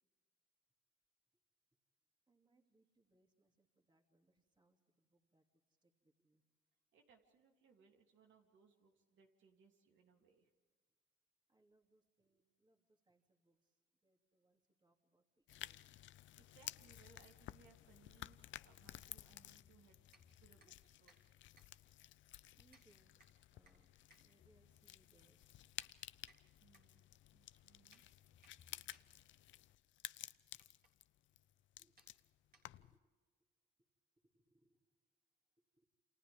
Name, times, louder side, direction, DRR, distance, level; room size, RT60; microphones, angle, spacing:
voice 1, 2.3-6.4 11.5-16.0 20.5-20.7 22.6-23.2 23.5-25.4 28.6-28.8 31.8-33.0 34.2-34.9 35.6-35.8, right 2 dB, 20° right, 3 dB, 2.7 m, -77 dB
voice 2, 6.9-10.5 16.4-20.0 20.4-21.3 26.6-28.0, right 6 dB, 70° right, 2 dB, 3.1 m, -69 dB
sound 1, 15.5-33.0, left 13 dB, 70° left, 0.6 m, -55 dB
sound 2, 19.6-21.2 24.4-25.5 28.3-29.7, left 7 dB, 45° left, 1.6 m, -72 dB
sound 3, 20.1-33.1, right 3 dB, 50° right, 4.0 m, -75 dB
29.0 x 27.5 x 3.6 m, 1.4 s
cardioid pair, 90°, 20 cm